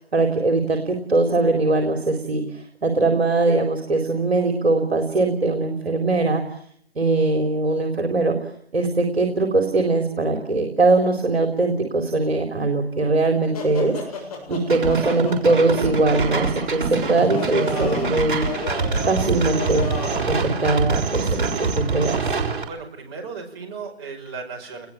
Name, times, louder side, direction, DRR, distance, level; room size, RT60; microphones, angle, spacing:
voice 1, 0.0-6.4 7.0-8.4 8.7-18.4 19.0-19.9 20.3-22.2, right 3 dB, 65° right, 5 dB, 4.2 m, -21 dB
sound 1, 13.5-20.3, left 4 dB, 35° left, 7.4 m, -34 dB
sound 2, 14.7-22.6, right 4 dB, 50° right, 6.4 m, -25 dB
voice 2, 22.7-24.9, right 4 dB, 25° right, 2 dB, 5.7 m, -35 dB
29.5 x 21.5 x 8.8 m, 0.69 s
figure-of-eight pair, 155°, 33 cm